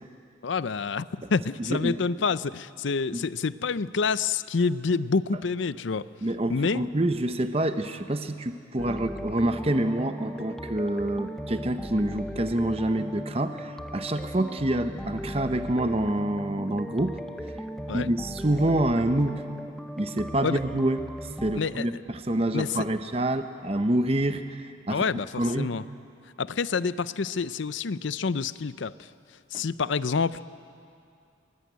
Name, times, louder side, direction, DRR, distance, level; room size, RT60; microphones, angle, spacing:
voice 1, 0.4-6.1 6.5-6.9 17.9-18.1 20.4-20.6 21.5-21.9 22.5-22.7 24.9-25.3 25.6-25.8 26.4-29.1 29.5-30.4, left 4 dB, 70° left, 16 dB, 0.5 m, -27 dB
voice 2, 1.6-1.9 3.1-3.2 6.2-17.2 17.9-19.4 20.0-25.0 25.4-25.7 29.5-29.6, right 1 dB, 30° right, 8 dB, 0.8 m, -27 dB
sound 1, 8.8-21.6, equal, ahead, 0.7 m, -37 dB
22.5 x 20.5 x 9.4 m, 2.5 s
head